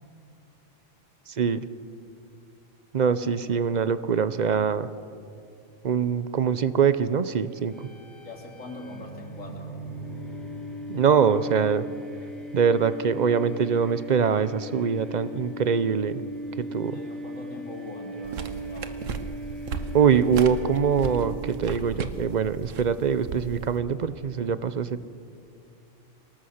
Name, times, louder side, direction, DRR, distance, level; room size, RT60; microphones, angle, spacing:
voice 1, 1.3-1.7 2.9-4.9 5.8-7.9 10.9-11.9 12.5-16.2 16.6-17.0 19.9-25.0, right 7 dB, 45° right, 14 dB, 0.7 m, -23 dB
sound 1, 7.6-21.6, equal, ahead, 5.6 m, -38 dB
voice 2, 8.2-9.7 16.8-19.1, left 1 dB, 90° left, 0 dB, 3.4 m, -42 dB
sound 2, 18.2-23.8, right 4 dB, 90° right, 1.4 m, -36 dB
26.0 x 19.0 x 6.5 m, 2.5 s
omnidirectional pair, 1.3 m